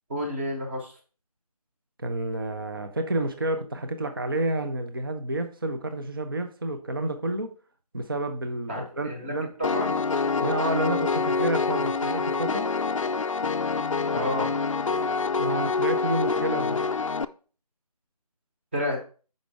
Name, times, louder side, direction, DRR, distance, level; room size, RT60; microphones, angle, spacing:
voice 1, 0.1-0.9 8.7-9.3 9.6-9.9 14.1-14.5 18.7-19.0, left 1 dB, 20° right, 1 dB, 1.0 m, -30 dB
voice 2, 2.0-7.5 7.9-9.5 10.4-12.7 15.4-16.8, right 2 dB, 35° right, 7 dB, 0.6 m, -29 dB
Piano, 9.6-17.2, left 4 dB, 55° left, 0.4 m, -26 dB
5.9 x 5.3 x 3.4 m, 0.38 s
figure-of-eight pair, 165°, 20 cm